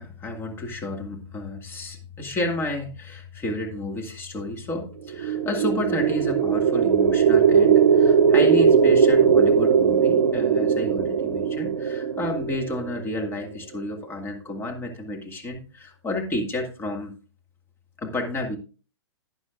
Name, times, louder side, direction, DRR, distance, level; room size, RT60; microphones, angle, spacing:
voice 1, 0.0-17.1 18.0-18.6, left 1 dB, 15° left, 2 dB, 1.9 m, -31 dB
sound 1, 5.1-13.2, right 7 dB, 75° right, 0.7 m, -19 dB
12.0 x 9.8 x 2.5 m, 0.35 s
hypercardioid pair, 130°, 15 cm